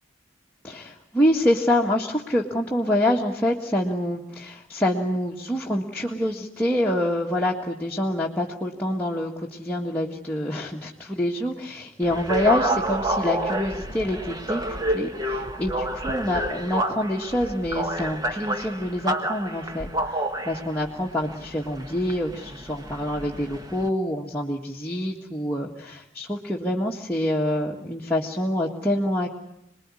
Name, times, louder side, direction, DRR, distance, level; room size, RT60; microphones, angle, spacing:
voice 1, 0.6-29.3, left 1 dB, 10° left, -4 dB, 1.8 m, -26 dB
sound 1, 12.0-23.9, right 1 dB, 20° right, 1.4 m, -29 dB
27.5 x 21.0 x 9.8 m, 0.80 s
head